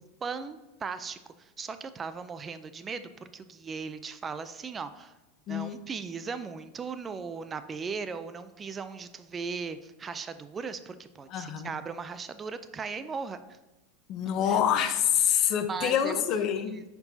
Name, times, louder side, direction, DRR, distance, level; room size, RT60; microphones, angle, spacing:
voice 1, 0.2-5.1 5.5-13.6 14.4-14.6 15.7-16.2 16.6-16.8, right 5 dB, 25° right, 11 dB, 0.4 m, -38 dB
voice 2, 5.5-5.8 11.3-11.7 14.1-16.8, left 9 dB, 50° left, 9 dB, 0.7 m, -26 dB
10.5 x 4.6 x 2.7 m, 1.1 s
hypercardioid pair, 105°, 0 cm